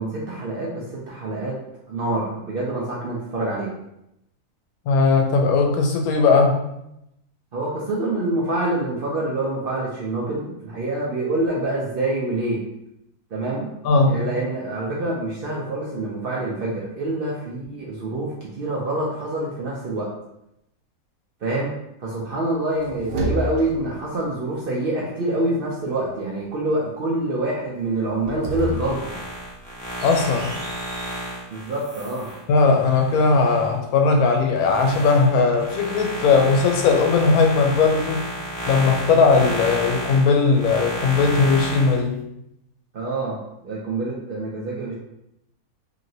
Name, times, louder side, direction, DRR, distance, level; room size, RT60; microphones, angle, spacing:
voice 1, 0.0-1.6 1.9-3.7 7.5-12.6 13.3-13.7 14.0-20.1 21.4-21.7 22.0-29.1 31.5-32.3 42.9-43.4 43.6-44.9, right 2 dB, 60° right, -4 dB, 0.6 m, -26 dB
voice 2, 4.9-6.6 13.8-14.2 30.0-30.5 32.5-38.2 38.7-42.1, left 4 dB, 90° left, 3 dB, 1.1 m, -18 dB
sound 1, 22.5-24.0 28.1-31.3, right 1 dB, 90° right, 1.1 m, -32 dB
sound 2, 28.6-33.7 34.2-42.0, right 1 dB, 10° left, 0.4 m, -32 dB
3.0 x 2.8 x 2.6 m, 0.83 s
omnidirectional pair, 1.5 m